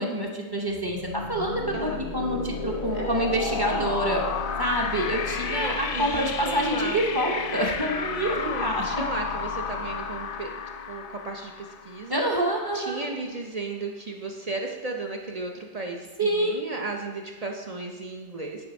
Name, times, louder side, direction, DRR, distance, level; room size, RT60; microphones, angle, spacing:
voice 1, 0.0-4.2 4.6-9.0 12.1-13.1 16.2-16.7, right 1 dB, 25° right, 0 dB, 0.8 m, -27 dB
sound 1, 0.7-12.4, left 5 dB, 60° left, 0.7 m, -32 dB
voice 2, 1.7-2.0 2.9-3.3 3.7-3.9 5.5-7.0 8.4-10.5 10.9-12.2 12.7-18.7, right 3 dB, 50° right, 2 dB, 0.5 m, -34 dB
9.6 x 3.4 x 5.1 m, 1.3 s
omnidirectional pair, 1.2 m